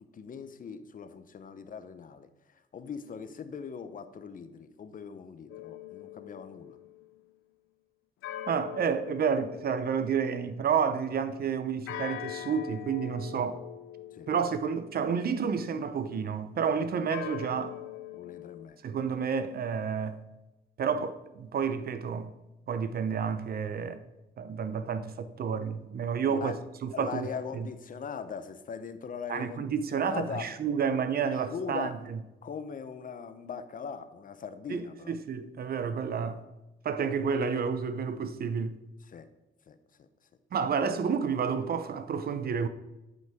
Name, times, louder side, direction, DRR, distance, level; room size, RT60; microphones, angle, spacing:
voice 1, 0.1-2.3 2.7-6.8 14.1-14.3 18.1-18.8 26.3-26.6 26.9-30.5 31.2-32.0 32.4-35.2 35.9-36.0 39.0-39.3 39.7-40.1, left 6 dB, 45° left, 0.7 m, -40 dB
sound 1, 5.5-7.1 8.2-10.7 11.9-16.7 17.1-18.7, left 12 dB, 85° left, 0.5 m, -43 dB
voice 2, 8.5-13.6 14.3-17.8 18.8-20.2 20.8-22.3 22.7-24.0 24.4-26.5 26.8-27.3 27.5-27.7 29.3-31.9 34.7-36.4 36.8-38.8 40.5-42.7, right 6 dB, 50° right, 0.7 m, -30 dB
9.4 x 5.4 x 3.5 m
cardioid pair, 90°, 20 cm